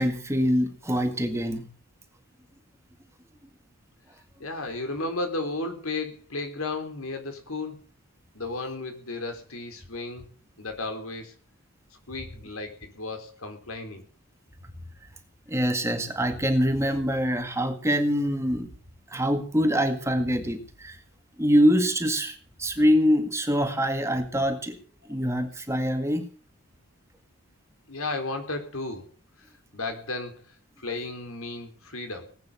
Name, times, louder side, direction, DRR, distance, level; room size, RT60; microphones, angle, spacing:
voice 1, 0.0-1.7 15.5-18.7 19.1-21.0 21.4-24.8 25.1-26.3, equal, 15° right, 6 dB, 1.9 m, -24 dB
voice 2, 4.4-7.8 8.3-10.3 10.6-11.4 12.1-14.1 27.9-29.1 29.4-29.5 29.7-30.4 30.8-32.3, left 2 dB, 75° left, 6 dB, 4.2 m, -34 dB
19.5 x 9.3 x 7.5 m, 0.40 s
head